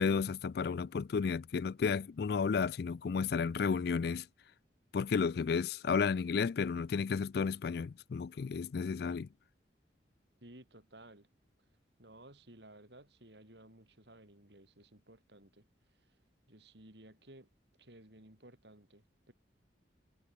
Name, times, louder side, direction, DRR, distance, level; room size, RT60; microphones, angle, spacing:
voice 1, 0.0-4.3 4.9-9.3, left 5 dB, 55° left, 0.4 m, -32 dB
voice 2, 10.4-11.3 12.0-15.7 16.5-17.5 17.8-19.3, right 1 dB, 65° right, 4.7 m, -57 dB
head